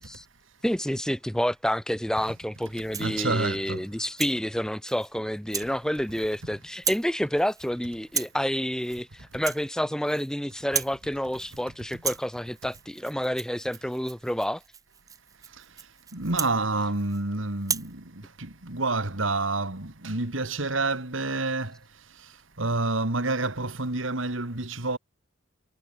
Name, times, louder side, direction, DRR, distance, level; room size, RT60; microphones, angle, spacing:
voice 1, 0.6-14.6, equal, 5° left, 1.2 m, -29 dB
Rattle (instrument), 2.7-3.2 3.7-4.4 4.9-5.1 5.5-5.7 6.0-6.4 6.7-7.1 7.4-7.7 8.1-8.4 8.8-9.0 9.3-10.3 10.6-11.0 11.3-11.6 11.9-17.2 17.6-17.9, right 7 dB, 20° right, 0.7 m, -35 dB
voice 2, 3.0-3.9 15.6-15.7 16.1-21.8 22.2-25.0, right 2 dB, 85° right, 2.9 m, -29 dB
head